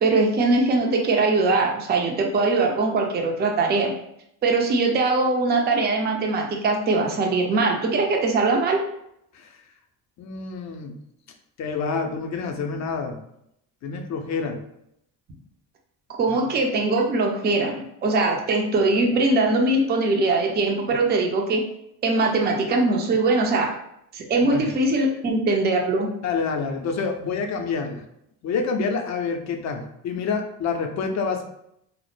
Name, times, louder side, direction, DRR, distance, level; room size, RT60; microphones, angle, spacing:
voice 1, 0.0-3.9 4.4-8.8 16.2-21.6 22.0-23.7 24.1-26.1, right 3 dB, 20° right, 2 dB, 0.4 m, -21 dB
voice 2, 10.2-10.9 11.6-13.2 13.8-14.6 24.4-24.7 26.2-28.0 28.4-31.4, left 5 dB, 40° left, 4 dB, 0.5 m, -27 dB
2.1 x 2.0 x 3.0 m, 0.76 s
hypercardioid pair, 65°, 46 cm